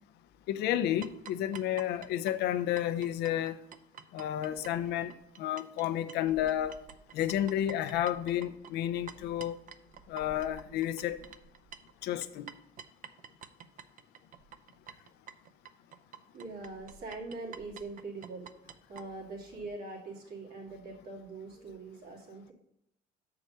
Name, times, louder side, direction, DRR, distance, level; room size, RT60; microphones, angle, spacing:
voice 1, 0.5-3.6 4.1-5.1 5.4-6.8 7.1-9.6 10.1-11.2 12.0-12.5, left 11 dB, 80° left, 12 dB, 0.6 m, -31 dB
sound 1, 1.0-5.8 6.1-19.1, right 7 dB, 50° right, 0.6 m, -49 dB
voice 2, 16.3-22.5, right 3 dB, 70° right, -2 dB, 2.3 m, -43 dB
6.5 x 4.7 x 6.6 m, 0.77 s
cardioid pair, 110°, 17 cm